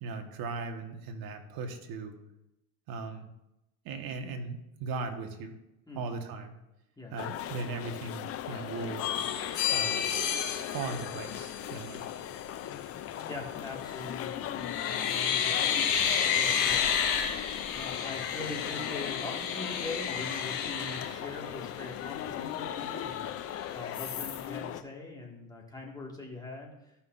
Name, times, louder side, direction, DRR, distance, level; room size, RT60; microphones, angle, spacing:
voice 1, 0.0-2.2 2.9-3.3 3.8-5.6 5.9-6.5 7.1-9.0 9.7-10.1 10.7-12.1, right 4 dB, 50° right, 6 dB, 1.4 m, -38 dB
voice 2, 5.9-6.2 7.0-7.1 13.3-15.8 16.4-16.9 17.7-26.7, left 2 dB, 10° left, -1 dB, 1.9 m, -42 dB
sound 1, 7.2-24.8, left 11 dB, 30° left, 0.5 m, -38 dB
sound 2, 9.0-12.0 13.8-14.2 14.5-21.8 22.2-22.3 22.6-23.5 23.9-24.4, left 8 dB, 65° left, 2.6 m, -31 dB
14.0 x 5.6 x 2.6 m, 0.92 s
supercardioid pair, 105°, 46 cm